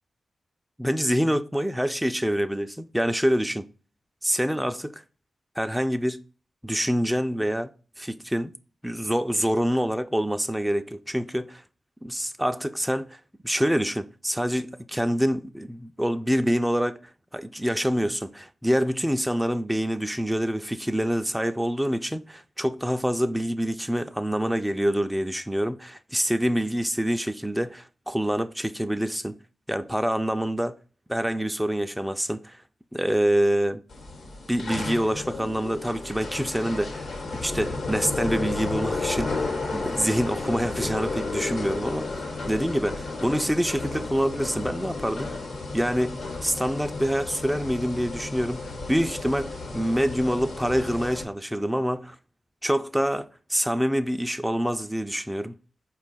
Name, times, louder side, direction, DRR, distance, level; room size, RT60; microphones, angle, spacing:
voice 1, 0.8-3.7 4.2-5.0 5.6-6.2 6.6-7.7 8.0-8.5 8.8-11.6 12.0-17.0 17.3-29.4 29.7-30.8 31.1-32.6 32.9-33.8 34.5-42.1 42.5-45.3 45.7-46.2 46.4-52.2 52.6-53.2 53.5-55.5, equal, 5° right, 0.3 m, -26 dB
sound 1, 33.9-51.2, left 3 dB, 70° left, 1.1 m, -33 dB
4.5 x 2.3 x 3.9 m
cardioid pair, 50°, 0 cm